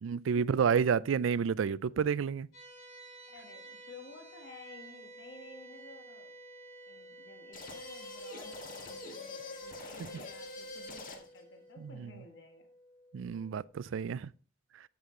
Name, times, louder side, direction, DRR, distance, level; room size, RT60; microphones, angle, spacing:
voice 1, 0.0-2.5 11.8-12.1 13.1-14.3, right 6 dB, 75° right, 0.4 m, -30 dB
sound 1, 2.5-13.7, right 2 dB, 85° left, 5.6 m, -53 dB
voice 2, 3.3-6.3 6.9-12.7, left 3 dB, 60° left, 1.4 m, -53 dB
sound 2, 7.5-11.4, left 2 dB, 45° left, 1.5 m, -45 dB
8.4 x 7.6 x 3.7 m
head